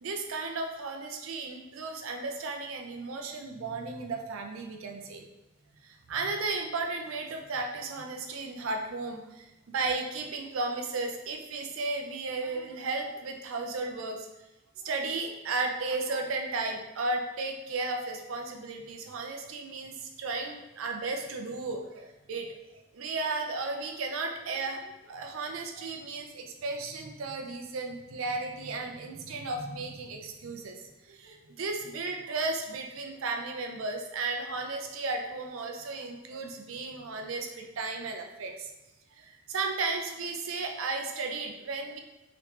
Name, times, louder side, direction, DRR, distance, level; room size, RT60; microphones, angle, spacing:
voice 1, 0.0-5.2 5.8-14.3 14.8-22.5 22.9-38.7 39.1-42.0, right 3 dB, 90° right, 3 dB, 0.5 m, -34 dB
3.0 x 2.9 x 3.2 m, 1.0 s
head